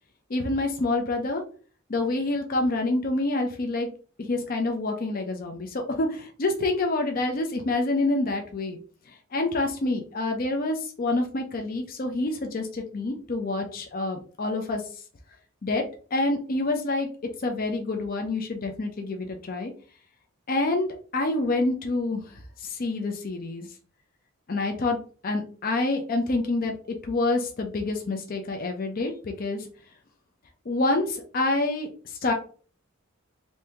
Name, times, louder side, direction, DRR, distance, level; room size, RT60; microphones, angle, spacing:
voice 1, 0.3-1.4 1.9-3.9 4.2-8.8 9.3-14.8 15.6-15.8 16.1-17.1 17.4-19.7 20.5-20.9 21.1-22.3 22.6-23.7 24.5-25.0 25.2-26.7 27.0-29.7 30.7-32.3, left 2 dB, 45° left, 3 dB, 0.5 m, -27 dB
2.8 x 2.7 x 3.4 m, 0.41 s
head